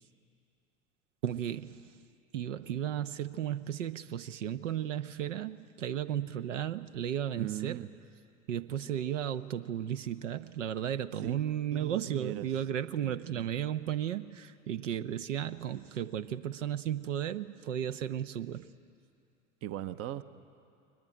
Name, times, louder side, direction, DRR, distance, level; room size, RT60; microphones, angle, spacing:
voice 1, 1.2-1.9 2.3-7.8 8.5-18.7, right 10 dB, 70° right, 12 dB, 0.9 m, -34 dB
voice 2, 7.4-7.9 11.2-12.5 13.0-13.5 19.6-20.2, right 13 dB, 35° right, 13 dB, 0.9 m, -39 dB
22.5 x 19.5 x 9.8 m, 2.4 s
figure-of-eight pair, 75°, 39 cm